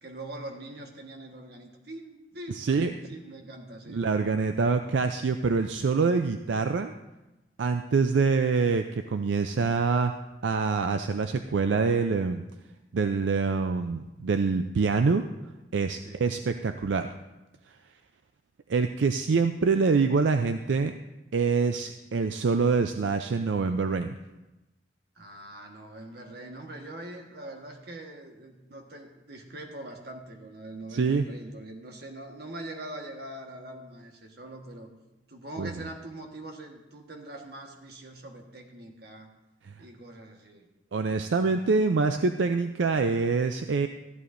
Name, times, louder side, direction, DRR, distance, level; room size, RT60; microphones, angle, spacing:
voice 1, 0.0-4.1 16.0-16.2 25.1-34.9 35.3-39.3 39.8-40.7 41.5-41.7, right 1 dB, 60° right, 3 dB, 1.4 m, -43 dB
voice 2, 2.5-2.9 3.9-6.9 7.6-10.2 10.4-12.4 12.9-15.2 15.7-17.1 18.7-20.9 21.3-24.2 30.9-31.2 35.6-35.7 39.6-39.7 40.9-43.9, right 4 dB, 85° right, 7 dB, 0.4 m, -25 dB
14.0 x 11.0 x 2.6 m, 1.0 s
head